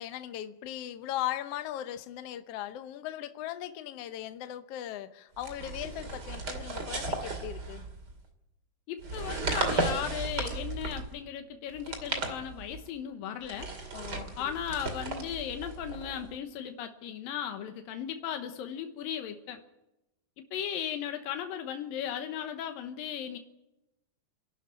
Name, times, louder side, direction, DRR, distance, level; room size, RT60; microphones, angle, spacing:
voice 1, 0.0-7.8 13.9-14.5, left 12 dB, 70° left, 10 dB, 1.5 m, -38 dB
sound 1, 5.4-8.2 9.0-11.2 11.7-12.9 13.4-16.3, right 3 dB, 30° right, 2.6 m, -35 dB
voice 2, 8.9-13.7 14.4-19.6 20.4-23.4, left 9 dB, 90° left, 7 dB, 2.8 m, -36 dB
27.5 x 12.0 x 10.0 m, 0.96 s
omnidirectional pair, 4.0 m